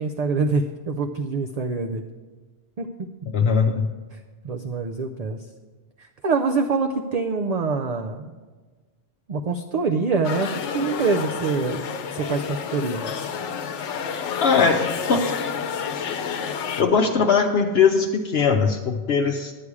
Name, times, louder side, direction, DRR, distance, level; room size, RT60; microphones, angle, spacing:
voice 1, 0.0-2.1 2.8-2.9 4.1-4.2 4.4-5.5 6.0-8.3 9.3-11.8 12.1-13.1, right 4 dB, 50° right, 4 dB, 0.5 m, -25 dB
voice 2, 3.3-3.9 14.4-14.8 15.1-15.3 16.8-19.5, left 5 dB, 65° left, 3 dB, 0.9 m, -20 dB
sound 1, 10.2-16.8, left 6 dB, 85° left, 1.0 m, -29 dB
11.0 x 8.5 x 4.8 m, 1.3 s
omnidirectional pair, 1.2 m